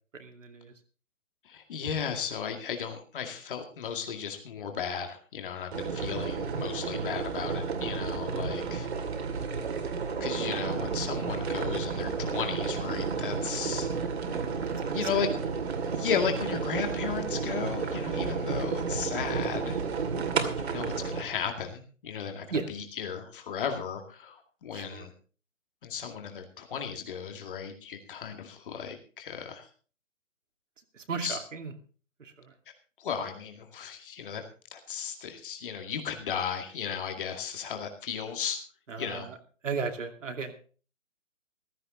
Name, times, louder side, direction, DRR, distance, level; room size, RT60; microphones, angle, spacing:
voice 1, 0.1-0.7 8.7-8.9 14.7-15.2 22.5-22.7 24.7-25.1 30.9-31.7 32.2-32.5 38.9-39.4 39.6-40.6, right 5 dB, 70° right, 5 dB, 2.6 m, -36 dB
voice 2, 1.5-8.9 10.2-13.9 14.9-15.3 16.0-19.8 20.6-25.1 25.8-29.7 31.2-31.4 33.0-34.4 34.7-38.6 39.0-39.3, left 7 dB, 40° left, 5 dB, 2.2 m, -35 dB
sound 1, 5.7-21.2, right 5 dB, 55° right, 2.4 m, -32 dB
15.5 x 13.5 x 3.8 m, 0.38 s
figure-of-eight pair, 150°, 39 cm